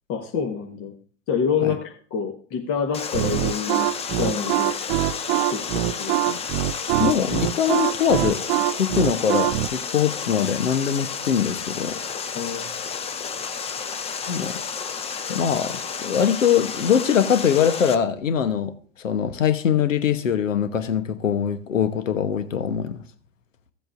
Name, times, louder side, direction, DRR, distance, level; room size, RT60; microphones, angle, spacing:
voice 1, 0.1-0.9 1.3-4.7 5.5-6.4 12.3-12.7, left 6 dB, 35° left, 3 dB, 1.2 m, -27 dB
Water, 2.9-18.0, left 6 dB, 15° left, 0.7 m, -31 dB
sound 1, 3.1-9.7, right 16 dB, 45° right, 0.4 m, -23 dB
voice 2, 7.0-8.4 8.7-12.0 14.3-14.6 15.3-18.7 19.0-23.0, left 8 dB, 85° left, 11 dB, 1.0 m, -22 dB
15.5 x 7.8 x 2.5 m, 0.43 s
figure-of-eight pair, 95°, 38 cm